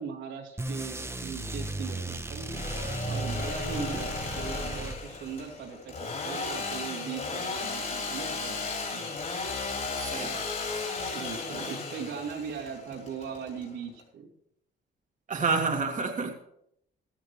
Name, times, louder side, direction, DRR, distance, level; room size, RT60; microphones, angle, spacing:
voice 1, 0.0-2.6 3.1-4.1 4.3-9.2 11.1-14.3, right 6 dB, 90° right, -2 dB, 3.3 m, -39 dB
sound 1, 0.6-5.4, right 2 dB, 10° right, 0.9 m, -35 dB
Engine / Sawing, 2.3-14.0, left 4 dB, 40° left, 4.6 m, -35 dB
voice 2, 3.7-4.0 9.9-10.5 15.3-16.3, right 4 dB, 40° right, 2 dB, 1.9 m, -29 dB
16.0 x 13.0 x 3.3 m, 0.71 s
cardioid pair, 90°, 20 cm